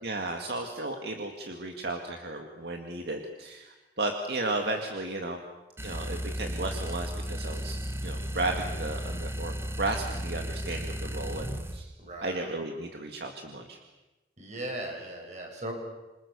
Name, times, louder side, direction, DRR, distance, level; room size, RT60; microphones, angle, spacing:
voice 1, 0.0-5.4 5.8-11.9 12.2-13.8, right 2 dB, 65° right, 3 dB, 2.2 m, -34 dB
sound 1, 5.8-11.8, equal, 15° right, 1.4 m, -34 dB
voice 2, 12.0-12.4 14.4-15.7, right 1 dB, 40° right, 2 dB, 6.9 m, -38 dB
28.0 x 25.0 x 6.9 m, 1.1 s
head